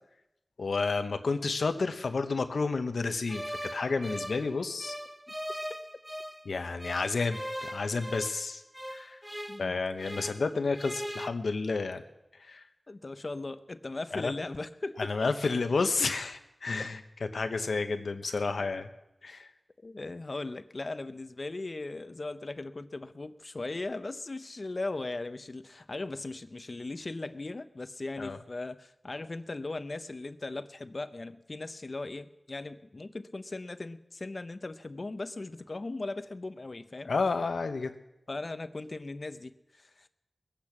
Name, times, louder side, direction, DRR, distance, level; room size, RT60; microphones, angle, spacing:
voice 1, 0.6-5.0 6.5-8.6 8.9-9.2 9.6-12.0 12.4-12.6 14.1-14.3 15.0-17.0 17.3-18.9 19.2-19.5 28.2-28.4 37.0-37.9, left 4 dB, 90° left, 8 dB, 1.0 m, -31 dB
sound 1, 3.3-6.5 6.8-10.5 10.7-11.3, equal, 5° right, 0.7 m, -40 dB
voice 2, 12.9-15.3 19.8-37.1 38.3-40.1, left 2 dB, 45° left, 11 dB, 0.7 m, -38 dB
21.5 x 8.7 x 6.0 m, 0.91 s
wide cardioid pair, 80°, 0 cm